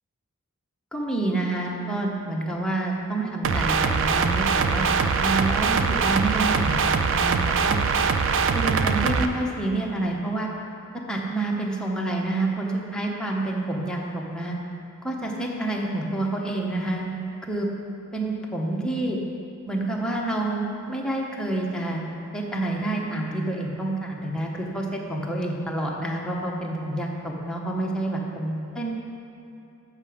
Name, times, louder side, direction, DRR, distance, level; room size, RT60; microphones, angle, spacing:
voice 1, 0.9-7.8 8.5-10.5 11.1-14.6 15.0-17.1 17.5-17.7 18.1-19.2 19.7-22.0 22.3-29.0, right 2 dB, 5° left, -2 dB, 0.8 m, -28 dB
sound 1, 3.4-9.3, right 5 dB, 60° right, 0.4 m, -22 dB
7.5 x 6.8 x 4.8 m, 2.8 s
head